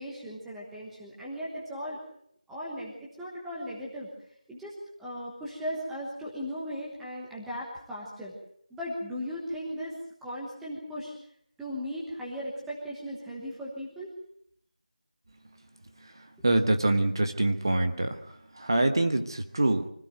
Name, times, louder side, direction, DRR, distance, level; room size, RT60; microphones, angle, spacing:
voice 1, 0.0-2.0 2.5-4.1 4.5-4.7 5.0-8.3 8.7-9.9 10.2-11.1 11.6-14.1, equal, ahead, -6 dB, 1.2 m, -37 dB
voice 2, 16.4-18.2 18.6-19.9, right 2 dB, 30° right, 7 dB, 1.3 m, -25 dB
25.0 x 16.0 x 7.9 m, 0.69 s
figure-of-eight pair, 175°, 4 cm